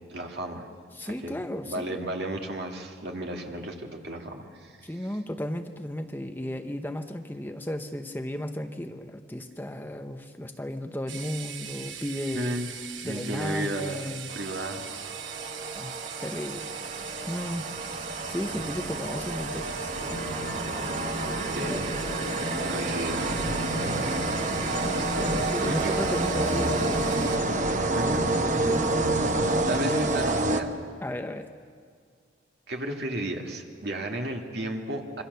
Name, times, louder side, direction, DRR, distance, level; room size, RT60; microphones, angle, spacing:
voice 1, 0.1-0.7 1.0-4.9 12.3-12.7 13.0-14.0 14.3-14.8 21.5-21.9 22.7-23.4 24.9-26.0 27.9-28.3 28.5-28.8 29.7-30.7 32.7-35.2, right 1 dB, 60° right, 2 dB, 2.3 m, -33 dB
voice 2, 0.9-2.0 4.8-12.6 13.0-14.3 15.7-16.7 17.3-17.7 18.3-19.9 21.6-21.8 23.8-24.2 25.5-27.5 31.0-31.5, left 1 dB, 10° left, 6 dB, 0.8 m, -34 dB
sound 1, 11.1-27.4, right 8 dB, 85° right, 1.1 m, -39 dB
sound 2, 14.3-31.1, right 2 dB, 40° right, 1.1 m, -29 dB
sound 3, 19.9-29.8, left 1 dB, 70° left, 2.0 m, -35 dB
26.5 x 24.0 x 6.8 m, 2.1 s
head